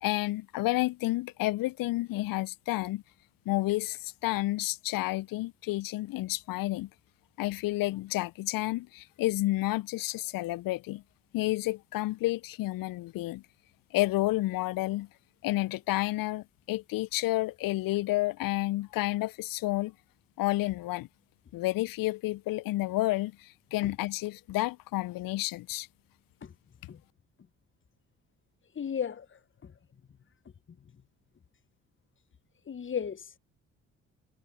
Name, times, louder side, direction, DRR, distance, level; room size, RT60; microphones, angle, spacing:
voice 1, 0.0-3.0 3.4-6.9 7.4-11.0 11.3-13.4 13.9-15.1 15.4-19.9 20.4-21.1 21.5-25.9, left 18 dB, 55° left, 1.4 m, -30 dB
voice 2, 28.7-29.7 32.7-33.3, left 8 dB, 30° left, 1.3 m, -35 dB
figure-of-eight pair, 45°, 39 cm